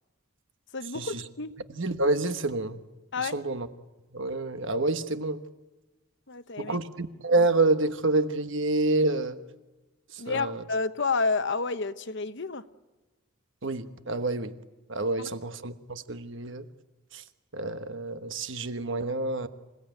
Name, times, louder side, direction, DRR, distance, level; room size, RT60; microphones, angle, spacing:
voice 1, 0.7-1.5 3.1-3.3 6.3-6.8 10.2-12.6 15.2-15.3, left 4 dB, 55° left, 12 dB, 0.9 m, -30 dB
voice 2, 1.7-2.8 3.2-3.7 4.1-5.4 6.6-9.4 10.3-10.6 13.6-14.5 14.9-16.6 17.1-17.2 17.5-19.5, right 2 dB, 55° right, 10 dB, 1.3 m, -28 dB
27.5 x 17.0 x 9.1 m, 1.1 s
head